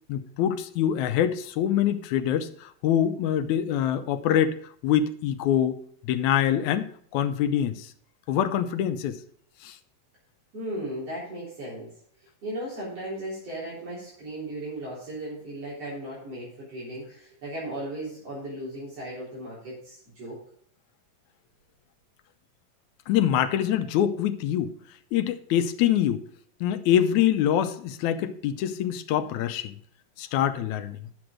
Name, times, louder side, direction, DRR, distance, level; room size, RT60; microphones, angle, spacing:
voice 1, 0.1-4.6 4.8-5.8 6.0-7.9 8.3-9.2 9.6-9.8 23.1-24.7 25.1-26.2 26.6-29.7 30.2-31.0, left 10 dB, 85° left, 9 dB, 2.0 m, -25 dB
voice 2, 10.5-11.9 12.4-20.4, right 1 dB, 55° right, -7 dB, 4.5 m, -36 dB
10.5 x 6.2 x 4.9 m, 0.63 s
omnidirectional pair, 3.4 m